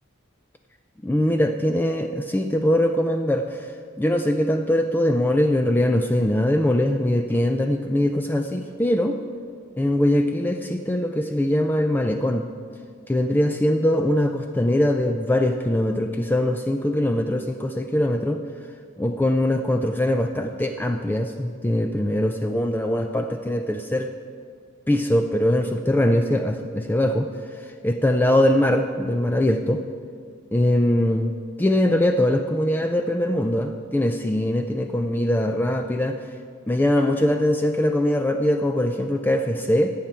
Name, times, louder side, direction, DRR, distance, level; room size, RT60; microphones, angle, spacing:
voice 1, 1.0-3.7 4.0-9.2 9.8-12.4 13.1-18.4 19.0-24.1 24.9-29.8 30.5-31.3 31.6-36.2 36.7-39.9, left 1 dB, 10° left, 5 dB, 0.3 m, -22 dB
14.5 x 9.0 x 4.4 m, 2.1 s
head